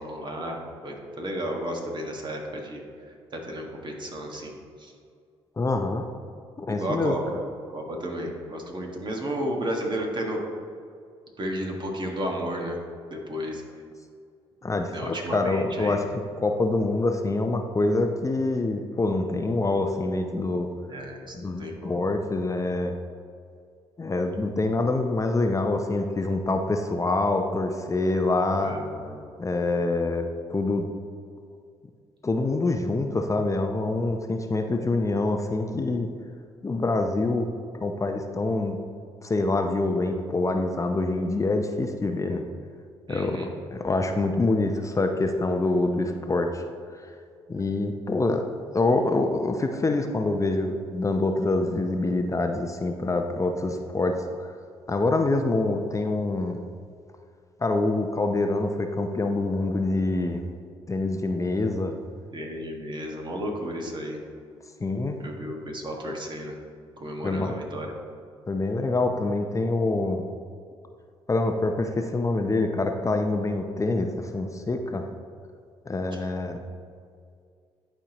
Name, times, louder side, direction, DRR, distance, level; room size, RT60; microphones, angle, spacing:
voice 1, 0.0-4.9 6.7-7.4 7.7-10.4 11.4-12.8 13.1-13.6 14.9-16.0 20.9-22.0 28.6-29.2 43.1-43.5 62.3-64.2 65.2-66.6 67.0-67.9 76.1-76.2, equal, 40° right, 1 dB, 1.5 m, -33 dB
voice 2, 5.6-6.0 6.6-7.2 14.6-16.0 16.4-20.7 21.4-23.0 24.0-28.8 29.4-30.9 32.2-36.1 36.6-37.5 37.7-38.8 39.2-42.4 43.1-43.4 43.7-46.6 47.5-48.4 48.7-54.6 54.9-56.6 57.6-60.4 60.9-62.0 64.8-65.2 67.2-67.5 68.5-70.3 71.3-75.1 75.9-76.6, left 2 dB, 25° left, 5 dB, 0.6 m, -25 dB
11.0 x 4.4 x 3.0 m, 2.2 s
supercardioid pair, 55°, 12 cm